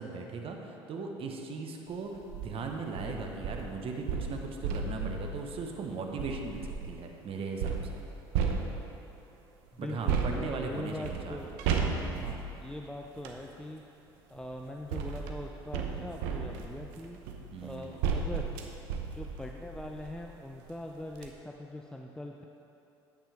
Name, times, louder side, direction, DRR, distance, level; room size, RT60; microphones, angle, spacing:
voice 1, 0.0-8.0 9.8-11.5 12.0-12.4 17.5-18.1, right 4 dB, 45° right, 2 dB, 1.2 m, -38 dB
sound 1, 2.1-2.5 3.0-7.0 7.6-9.2 10.1-13.4 14.4-20.3 20.7-20.8 21.1-21.3, right 5 dB, 70° right, 0.8 m, -34 dB
voice 2, 9.7-11.5 12.0-13.9 14.3-17.2 17.6-18.5 18.9-22.4, left 1 dB, 5° left, 2 dB, 0.5 m, -42 dB
10.0 x 8.8 x 3.5 m, 2.9 s
hypercardioid pair, 65°, 13 cm